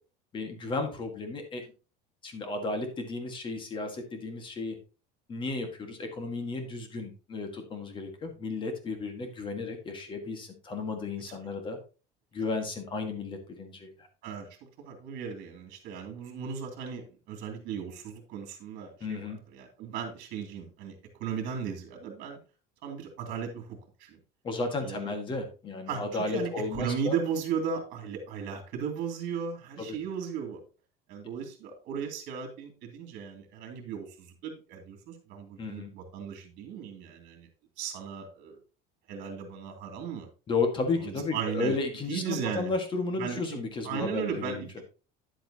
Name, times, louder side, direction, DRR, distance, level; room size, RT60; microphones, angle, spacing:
voice 1, 0.3-1.6 2.2-4.8 5.3-11.8 12.3-13.9 19.0-19.4 24.4-27.1 29.8-30.0 35.6-35.9 40.5-44.7, left 3 dB, 25° left, 5 dB, 1.7 m, -33 dB
voice 2, 14.8-19.2 19.5-20.9 21.2-22.4 22.8-24.2 24.8-25.1 25.9-30.6 31.1-37.5 37.8-38.6 39.1-40.3 41.0-41.8 42.1-42.7 43.2-43.4 43.8-44.8, right 7 dB, 55° right, 3 dB, 2.6 m, -36 dB
10.5 x 7.8 x 2.9 m, 0.34 s
cardioid pair, 165°, 20 cm